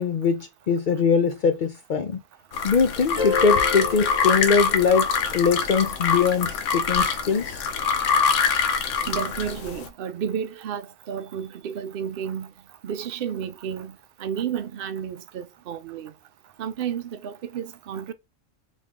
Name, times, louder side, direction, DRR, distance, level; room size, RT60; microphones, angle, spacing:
voice 1, 0.0-2.2 2.6-7.6, left 5 dB, 60° left, 0.5 m, -22 dB
sound 1, 2.5-9.9, left 6 dB, 75° left, 1.0 m, -24 dB
sound 2, 3.2-5.4, left 6 dB, 25° left, 1.7 m, -31 dB
voice 2, 9.1-12.5 12.8-13.9 14.2-16.1 16.6-18.1, right 8 dB, 55° right, 0.7 m, -31 dB
3.5 x 3.2 x 3.6 m
omnidirectional pair, 1.3 m